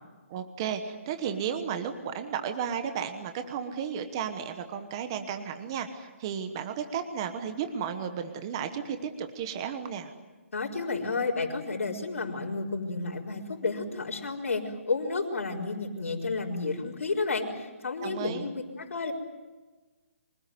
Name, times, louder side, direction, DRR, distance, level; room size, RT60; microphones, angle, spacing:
voice 1, 0.3-10.1 18.0-18.5, right 7 dB, 20° right, 8 dB, 1.1 m, -34 dB
voice 2, 10.5-19.1, left 3 dB, 70° left, -4 dB, 4.6 m, -31 dB
25.0 x 19.5 x 9.5 m, 1.2 s
hypercardioid pair, 175°, 8 cm